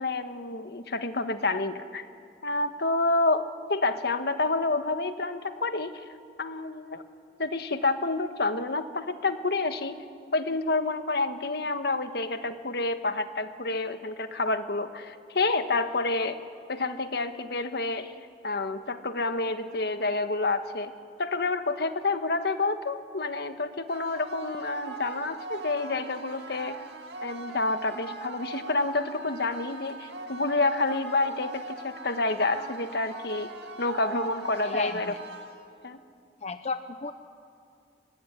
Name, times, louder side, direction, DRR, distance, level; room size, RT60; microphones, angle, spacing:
voice 1, 0.0-2.0 2.4-6.0 6.4-7.0 7.4-10.0 10.3-16.4 16.7-18.1 18.4-20.9 21.2-26.8 27.2-33.5 33.8-35.1 35.8-36.0, left 3 dB, 65° left, 9 dB, 1.4 m, -28 dB
sound 1, 23.9-35.9, right 3 dB, 75° right, 2.3 m, -41 dB
voice 2, 34.6-35.2 36.4-37.1, left 4 dB, 40° left, 9 dB, 0.8 m, -33 dB
24.5 x 20.0 x 10.0 m, 2.5 s
head